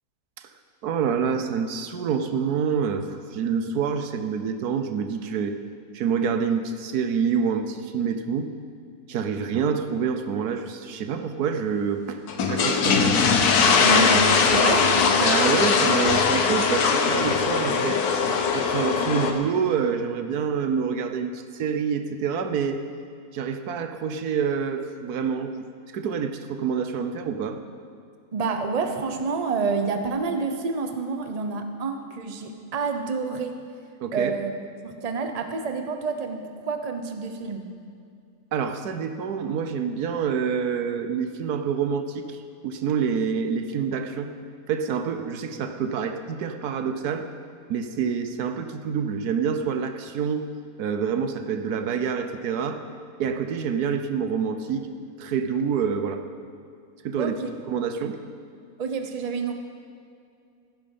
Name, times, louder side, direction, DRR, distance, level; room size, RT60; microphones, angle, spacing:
voice 1, 0.8-5.5 5.9-8.5 9.1-13.1 15.2-18.0 18.5-22.8 23.3-25.5 25.9-27.6 34.0-34.3 38.5-42.4 42.6-44.3 44.7-47.3 47.7-50.5 50.8-52.8 53.2-54.9 55.2-56.2 57.0-57.3 57.7-58.2, right 6 dB, 85° right, 8 dB, 1.4 m, -27 dB
sound 1, 12.3-19.3, left 5 dB, 85° left, 1.6 m, -20 dB
voice 2, 13.8-14.9 28.3-33.6 34.1-34.5 34.8-37.7 57.2-57.5 58.8-59.5, right 4 dB, 30° right, 6 dB, 0.9 m, -28 dB
15.0 x 11.0 x 5.5 m, 2.4 s
omnidirectional pair, 1.6 m